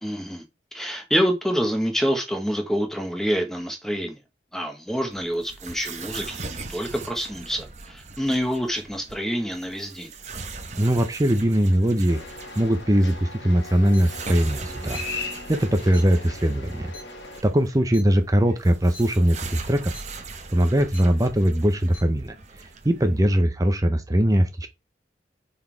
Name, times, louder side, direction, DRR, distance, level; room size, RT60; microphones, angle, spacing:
voice 1, 0.0-0.4 0.7-4.2 4.5-10.1, equal, ahead, 1.0 m, -27 dB
sound 1, 5.1-23.2, right 4 dB, 35° right, 0.9 m, -40 dB
voice 2, 10.8-12.2 12.6-15.0 15.5-16.9 17.4-19.9 20.5-24.7, equal, 20° right, 0.6 m, -21 dB
sound 2, 12.1-17.4, left 3 dB, 70° left, 1.3 m, -38 dB
sound 3, 13.9-14.0 14.9-15.0 15.9-16.0 16.9-17.0 17.9-18.0 18.9-19.0 19.9-20.0 20.9-21.0 21.9-22.0, left 3 dB, 45° left, 1.5 m, -41 dB
5.4 x 4.1 x 4.5 m
head